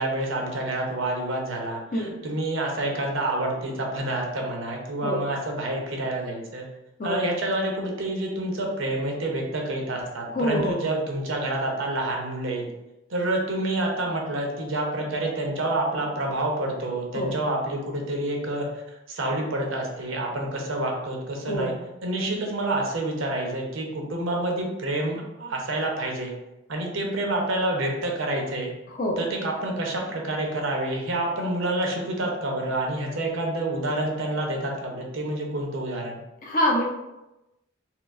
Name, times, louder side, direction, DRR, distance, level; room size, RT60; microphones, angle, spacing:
voice 1, 0.0-6.7 7.0-12.6 13.1-18.7 19.1-21.7 22.0-26.3 26.7-28.7 29.2-36.2, right 1 dB, 75° right, 0 dB, 0.7 m, -28 dB
voice 2, 10.3-10.8 17.1-17.3 21.5-21.8 28.9-29.2 36.4-36.8, equal, 40° left, 0 dB, 0.6 m, -25 dB
4.3 x 2.0 x 2.5 m, 0.93 s
head